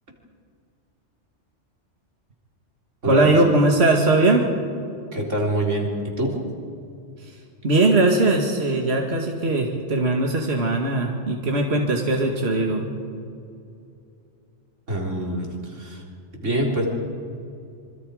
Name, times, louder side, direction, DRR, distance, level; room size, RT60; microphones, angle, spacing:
voice 1, 3.1-4.4 7.2-7.3 7.6-12.8, right 2 dB, 60° right, 1 dB, 2.2 m, -20 dB
voice 2, 5.1-6.4 14.9-15.5 15.8-16.0 16.4-16.9, right 1 dB, 90° right, -1 dB, 4.1 m, -25 dB
26.5 x 25.5 x 5.0 m, 2.6 s
omnidirectional pair, 1.2 m